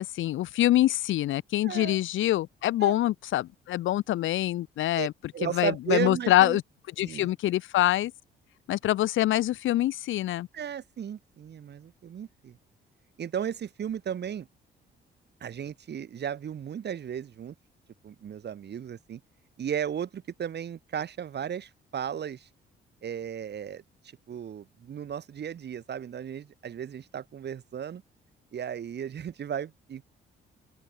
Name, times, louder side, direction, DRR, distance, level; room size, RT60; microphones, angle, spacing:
voice 1, 0.0-5.1 5.4-6.6 7.0-8.1 8.7-10.5, left 14 dB, 80° left, 1.0 m, -25 dB
voice 2, 1.6-2.0 2.8-3.0 5.0-5.1 5.3-6.6 7.0-7.3 10.5-12.6 13.2-14.5 15.4-17.6 18.0-19.2 19.6-22.5 23.0-23.8 24.3-28.0 28.5-30.1, right 8 dB, 60° right, 7.0 m, -35 dB
open air
cardioid pair, 90°, 20 cm